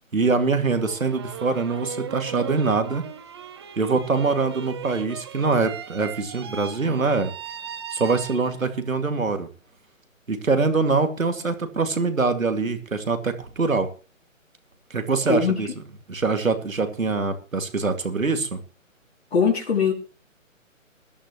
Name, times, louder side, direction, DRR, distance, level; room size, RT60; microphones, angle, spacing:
voice 1, 0.1-3.0 3.8-7.3 7.9-9.5 10.3-13.9 14.9-15.7 16.1-18.6, right 4 dB, 80° right, 2.5 m, -24 dB
sound 1, 0.6-8.8, right 7 dB, 20° right, 0.7 m, -38 dB
voice 2, 19.3-19.9, left 6 dB, 50° left, 2.9 m, -21 dB
20.5 x 11.5 x 3.1 m
figure-of-eight pair, 140°, 40 cm